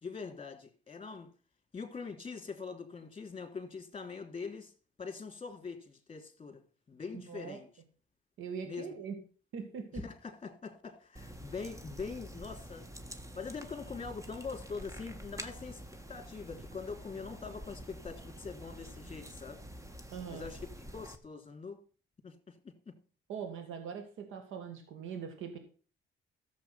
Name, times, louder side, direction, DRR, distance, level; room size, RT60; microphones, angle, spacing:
voice 1, 0.0-1.3 1.7-4.7 5.0-6.6 6.9-7.7 8.6-8.9 10.0-12.9 13.3-15.8 16.1-19.6 20.3-21.8 22.2-22.9, left 5 dB, 25° left, 3.1 m, -43 dB
voice 2, 7.1-7.6 8.4-9.2 9.5-10.0 20.1-20.5 23.3-25.6, right 6 dB, 90° right, 2.1 m, -42 dB
sound 1, 11.2-21.2, right 1 dB, 15° right, 1.6 m, -47 dB
13.0 x 7.5 x 5.8 m
cardioid pair, 90°, 20 cm